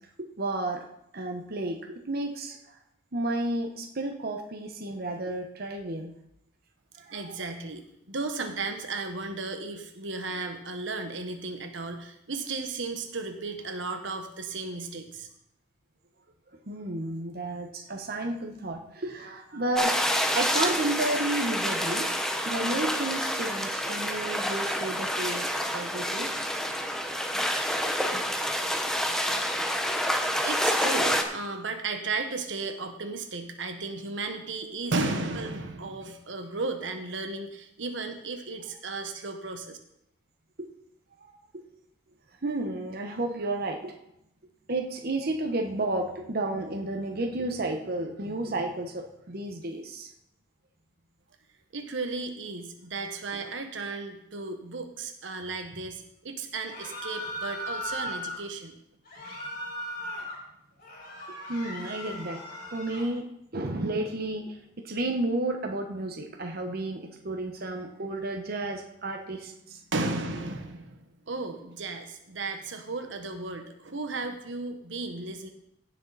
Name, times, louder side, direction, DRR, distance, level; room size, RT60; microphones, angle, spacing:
voice 1, 0.2-0.8 1.1-2.8 3.1-6.1 7.0-7.4 16.7-22.1 22.4-25.5 25.7-26.3 27.8-27.9 41.2-41.6 42.4-43.9 44.7-50.1 59.2-59.4 61.5-62.4 62.7-63.2 63.5-64.6 64.8-69.8, right 2 dB, 55° right, 3 dB, 1.1 m, -32 dB
voice 2, 7.1-15.3 30.4-39.8 51.7-58.7 69.9-75.5, right 3 dB, 80° right, 5 dB, 1.3 m, -34 dB
sound 1, 19.8-31.2, equal, 5° left, 1.0 m, -28 dB
sound 2, 56.7-58.4 59.1-60.4 60.8-63.1, left 1 dB, 50° left, 4.4 m, -37 dB
16.5 x 6.6 x 4.1 m, 0.78 s
head